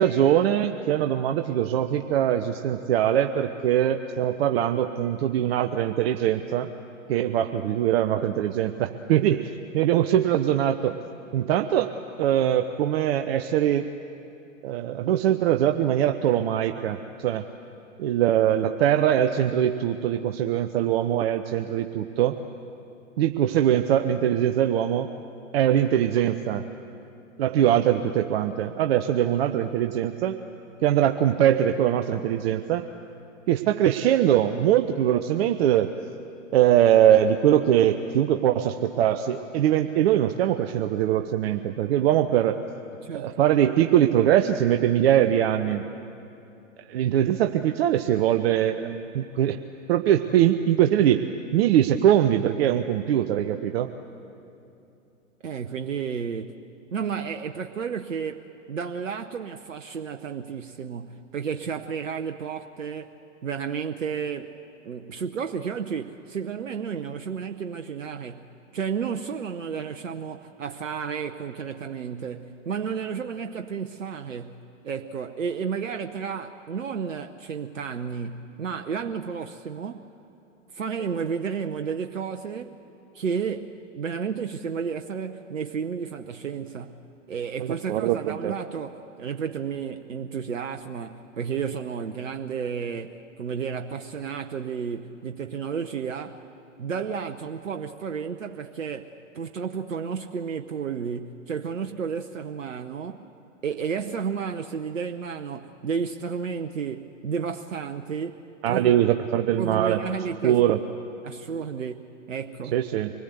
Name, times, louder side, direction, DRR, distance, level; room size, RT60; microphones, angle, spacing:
voice 1, 0.0-6.7 7.1-9.5 9.7-11.0 11.3-11.9 12.2-13.9 14.6-17.5 18.0-22.4 23.2-25.1 25.5-26.7 27.4-30.4 30.8-32.9 33.5-35.9 36.5-42.6 43.1-45.8 46.9-49.6 49.9-51.2 51.5-53.9 87.6-88.5 108.6-110.0 110.4-110.8 112.7-113.1, right 11 dB, 50° right, 7 dB, 0.9 m, -22 dB
voice 2, 55.4-56.6 56.9-63.1 63.4-64.5 64.8-68.5 68.7-80.1 80.7-82.7 83.1-96.4 96.8-103.2 103.6-108.4 108.7-109.0 109.6-110.6 111.2-112.8, right 6 dB, 80° right, 6 dB, 0.9 m, -32 dB
25.0 x 20.5 x 8.1 m, 2.8 s
figure-of-eight pair, 105°, 38 cm